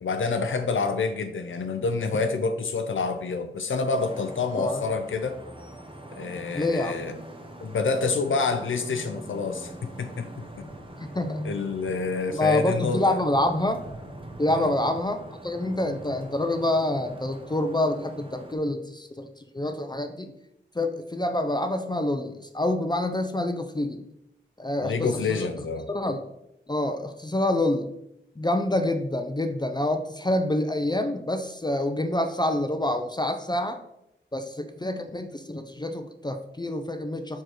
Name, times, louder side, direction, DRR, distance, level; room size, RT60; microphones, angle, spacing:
voice 1, 0.0-5.4 6.2-7.2 7.6-10.7 11.4-13.2 14.5-14.7 24.8-25.9, left 4 dB, 80° left, 7 dB, 0.5 m, -28 dB
Vehicle horn car horn honking / Traffic noise roadway noise, 3.9-18.6, right 1 dB, 25° right, 0.9 m, -43 dB
voice 2, 6.5-7.0 10.6-11.5 12.3-13.8 14.4-19.3 19.5-20.3 20.7-24.0 24.6-25.5 25.9-26.2 26.7-27.9 28.4-33.8 34.3-37.4, left 1 dB, 20° left, 6 dB, 0.6 m, -27 dB
4.7 x 4.4 x 4.5 m, 0.81 s
cardioid pair, 50°, 20 cm